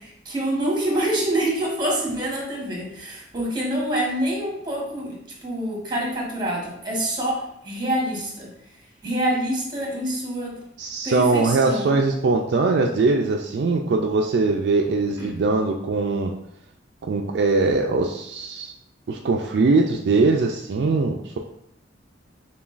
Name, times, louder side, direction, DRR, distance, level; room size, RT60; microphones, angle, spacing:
voice 1, 0.0-8.5 9.0-10.6 11.0-11.9 15.2-15.3, right 1 dB, 25° right, -2 dB, 1.1 m, -26 dB
voice 2, 10.8-16.3 17.0-18.7 19.1-21.4, right 3 dB, 65° right, 1 dB, 0.3 m, -21 dB
6.9 x 2.3 x 2.4 m, 0.76 s
head